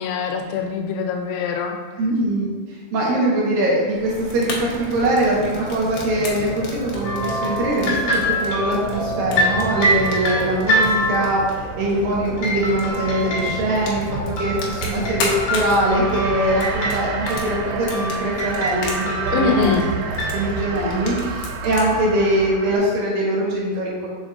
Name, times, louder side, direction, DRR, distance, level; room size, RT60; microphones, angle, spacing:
voice 1, 0.0-1.8 19.3-19.8, left 5 dB, 90° left, 3 dB, 3.0 m, -23 dB
voice 2, 2.0-2.5 2.9-19.8 20.3-24.1, right 1 dB, 65° right, -4 dB, 2.4 m, -22 dB
sound 1, 3.8-22.8, right 5 dB, 80° right, 2.6 m, -31 dB
Fire, 4.0-21.9, left 3 dB, 70° left, 2.3 m, -36 dB
sound 2, 7.0-11.4 12.4-20.4, equal, 50° left, 2.2 m, -25 dB
7.1 x 7.1 x 2.5 m, 1.4 s
omnidirectional pair, 5.4 m